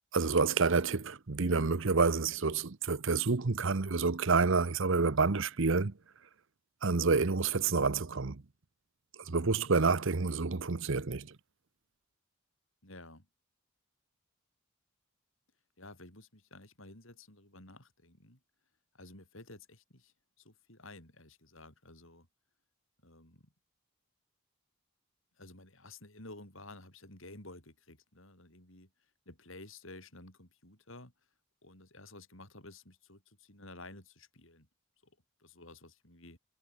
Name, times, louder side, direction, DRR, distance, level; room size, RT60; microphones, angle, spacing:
voice 1, 0.1-5.9 6.8-8.4 9.3-11.3, right 4 dB, 60° right, 0.9 m, -28 dB
voice 2, 12.8-13.3 15.8-18.4 18.9-22.3 23.0-23.5 25.4-28.9 29.3-31.1 31.6-34.7 35.0-35.1 35.4-36.4, left 2 dB, 65° left, 8.0 m, -52 dB
head